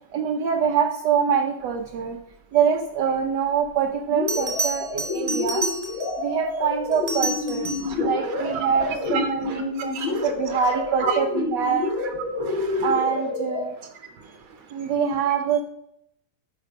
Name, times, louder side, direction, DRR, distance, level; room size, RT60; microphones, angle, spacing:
voice 1, 0.1-2.2 2.5-5.6 6.2-7.7 8.0-11.9 12.8-13.7 14.7-15.6, right 7 dB, 65° right, 4 dB, 1.2 m, -24 dB
Bell, 3.6-3.7 4.3-6.2 6.9-8.0 10.7-10.9, right 2 dB, 35° right, 0.6 m, -30 dB
sound 1, 4.1-13.6, left 3 dB, 75° left, 3.1 m, -28 dB
voice 2, 7.7-11.2 11.8-12.9 13.7-14.9, right 5 dB, 85° right, 5 dB, 2.0 m, -34 dB
8.2 x 6.0 x 5.2 m, 0.77 s
omnidirectional pair, 2.2 m